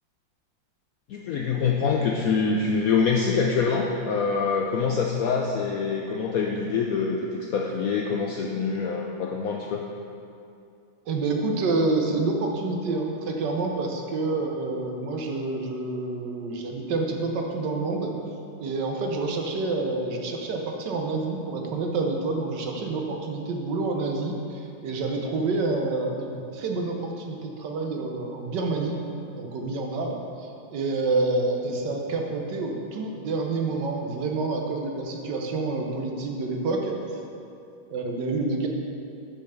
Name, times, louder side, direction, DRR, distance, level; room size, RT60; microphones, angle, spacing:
voice 1, 1.1-9.8, left 5 dB, 90° left, 0 dB, 0.7 m, -25 dB
voice 2, 11.1-18.1 18.6-29.0 29.3-37.2 37.9-38.7, right 3 dB, 65° right, 2 dB, 1.4 m, -28 dB
6.9 x 5.6 x 6.4 m, 2.6 s
omnidirectional pair, 2.1 m